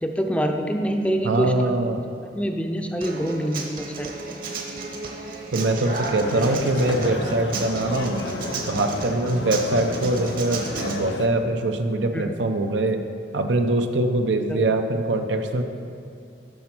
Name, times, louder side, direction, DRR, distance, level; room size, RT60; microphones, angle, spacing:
voice 1, 0.0-1.7 2.4-4.1 12.1-12.3 14.5-14.6, equal, 5° left, 4 dB, 0.5 m, -25 dB
voice 2, 1.2-2.0 5.5-8.2 8.7-13.0 13.3-15.6, right 2 dB, 90° right, 6 dB, 0.7 m, -23 dB
Human voice / Acoustic guitar, 3.0-11.0, right 3 dB, 50° right, 1.0 m, -33 dB
sound 1, 6.2-11.3, left 3 dB, 80° left, 0.5 m, -32 dB
12.0 x 4.3 x 6.0 m, 2.4 s
head